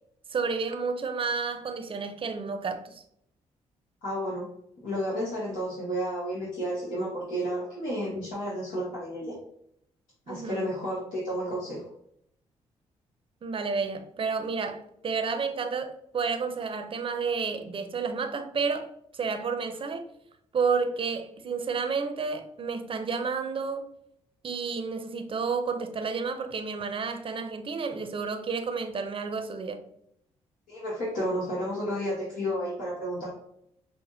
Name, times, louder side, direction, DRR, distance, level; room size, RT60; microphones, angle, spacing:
voice 1, 0.3-3.0 10.3-10.6 13.4-18.9 19.1-20.0 20.5-23.8 24.4-29.8, right 5 dB, 40° right, 0.6 m, -31 dB
voice 2, 4.0-4.5 4.8-9.4 10.3-11.8 30.7-33.3, equal, 75° left, 1.1 m, -31 dB
5.8 x 2.1 x 2.6 m
supercardioid pair, 55°, 13 cm